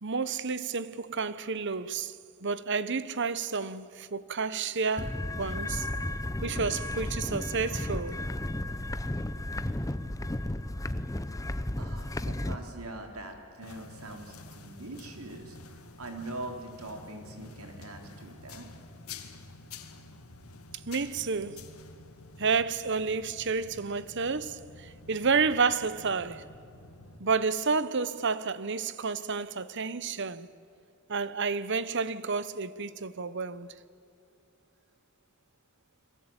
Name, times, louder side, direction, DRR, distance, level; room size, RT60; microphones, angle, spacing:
voice 1, 0.0-2.2 2.4-5.9 6.4-8.2 20.9-21.7 22.4-26.4 27.2-30.5 31.1-33.7, right 5 dB, 55° right, 1.0 m, -30 dB
sound 1, 5.0-12.6, left 1 dB, 15° left, 0.8 m, -33 dB
voice 2, 11.8-15.6 16.0-18.7, right 2 dB, 80° right, 4.2 m, -42 dB
sound 2, 13.6-27.2, left 3 dB, 85° left, 2.3 m, -49 dB
29.5 x 22.0 x 9.0 m
head